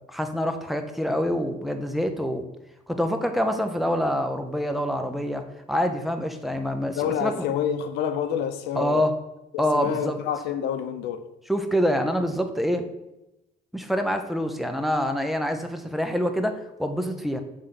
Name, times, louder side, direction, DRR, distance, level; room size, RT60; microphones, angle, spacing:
voice 1, 0.1-2.4 2.9-5.4 5.7-7.5 8.8-9.1 9.6-10.1 11.5-12.9 13.7-17.4, equal, ahead, 0.7 m, -26 dB
voice 2, 7.0-9.1 9.5-11.3, left 8 dB, 85° left, 0.7 m, -28 dB
6.6 x 3.7 x 5.8 m
cardioid pair, 110°, 17 cm